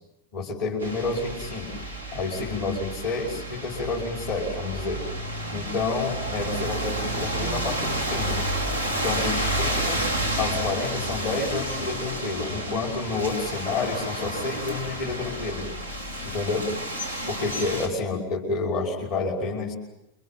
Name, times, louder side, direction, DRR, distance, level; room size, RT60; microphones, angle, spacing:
voice 1, 0.3-1.8 2.1-5.0 5.5-8.5 8.9-10.0 10.4-15.7 16.2-16.7 17.3-19.7, left 3 dB, 50° left, -4 dB, 5.6 m, -29 dB
sound 1, 0.8-17.9, right 1 dB, 90° left, 4.2 m, -30 dB
28.5 x 25.0 x 7.6 m, 0.87 s
figure-of-eight pair, 90°, 0 cm